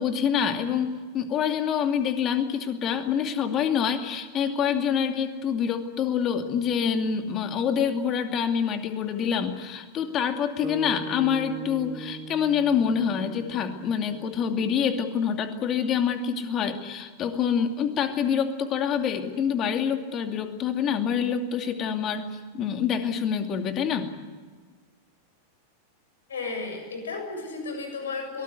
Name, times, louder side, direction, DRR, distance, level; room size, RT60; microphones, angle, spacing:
voice 1, 0.0-22.3 22.5-24.1, left 7 dB, 30° left, 6 dB, 2.5 m, -26 dB
sound 1, 10.6-14.9, right 3 dB, 5° right, 3.4 m, -40 dB
voice 2, 26.3-28.4, left 4 dB, 65° left, 4 dB, 7.3 m, -33 dB
23.0 x 19.0 x 9.5 m, 1.5 s
figure-of-eight pair, 90°, 0 cm